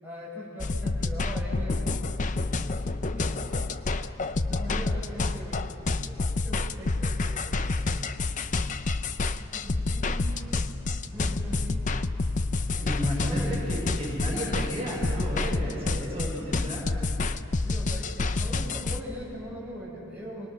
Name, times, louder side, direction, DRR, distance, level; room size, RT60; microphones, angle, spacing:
voice 1, 0.0-3.6 4.2-8.5 9.4-10.3 11.0-11.8 12.7-13.6 17.6-20.5, equal, 10° right, -7 dB, 6.4 m, -41 dB
sound 1, 0.6-19.0, left 3 dB, 35° left, 0.6 m, -28 dB
voice 2, 10.9-12.1 12.5-16.9, equal, 30° right, -5 dB, 5.5 m, -33 dB
27.0 x 21.0 x 6.4 m, 2.9 s
head